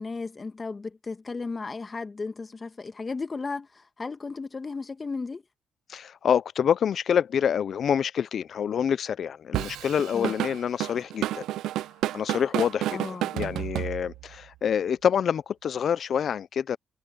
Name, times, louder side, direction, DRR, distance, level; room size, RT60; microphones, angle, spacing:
voice 1, 0.0-5.4 10.1-10.3 12.9-13.3, left 4 dB, 35° left, 1.7 m, -35 dB
voice 2, 5.9-11.4 12.1-16.8, left 8 dB, 65° left, 0.6 m, -27 dB
Drum kit / Drum, 9.5-14.4, right 14 dB, 85° right, 0.5 m, -30 dB
cardioid pair, 70°, 0 cm